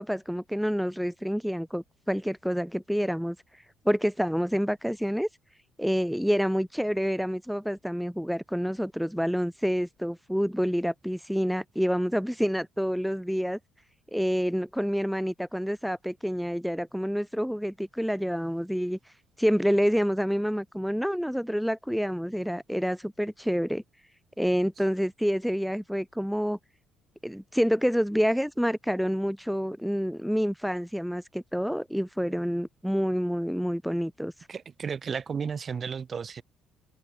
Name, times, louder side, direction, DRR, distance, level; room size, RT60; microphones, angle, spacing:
voice 1, 0.0-3.4 3.8-5.3 5.8-13.6 14.1-19.0 19.4-23.8 24.4-26.6 27.2-34.3, equal, ahead, 1.6 m, -28 dB
voice 2, 34.5-36.4, right 6 dB, 35° right, 1.6 m, -33 dB
cardioid pair, 130°, 0 cm